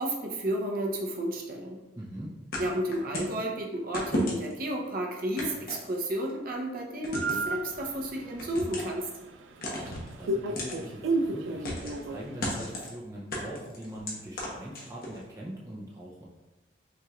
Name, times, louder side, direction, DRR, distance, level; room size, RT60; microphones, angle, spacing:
voice 1, 0.0-1.8 2.6-9.1, right 1 dB, 50° right, 0 dB, 0.7 m, -32 dB
voice 2, 2.0-2.4 9.7-16.3, right 1 dB, 15° right, -4 dB, 0.5 m, -42 dB
sound 1, 2.5-3.4 3.9-4.6 5.4-6.3 7.0-7.5 8.4-9.0 9.6-10.1 10.6-10.8 11.6-12.0 12.4-12.9 13.3-15.2, left 1 dB, 55° left, 1.0 m, -34 dB
sound 2, 7.1-12.9, right 2 dB, 85° right, 0.4 m, -34 dB
5.7 x 3.1 x 2.4 m, 1.1 s
head